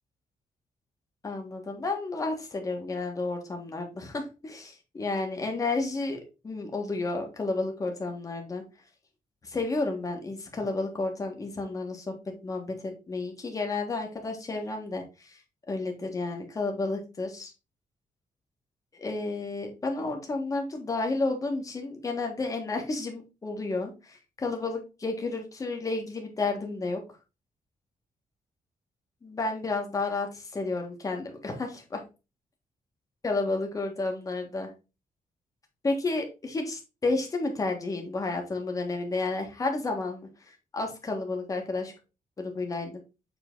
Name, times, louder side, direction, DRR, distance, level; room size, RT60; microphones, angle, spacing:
voice 1, 1.2-8.6 9.4-15.4 15.7-17.5 18.9-27.0 29.2-32.0 33.2-34.7 35.8-40.3 40.7-41.9 42.4-43.0, left 3 dB, 25° left, 3 dB, 1.5 m, -31 dB
7.2 x 3.9 x 3.8 m, 0.29 s
wide cardioid pair, 175°, 14 cm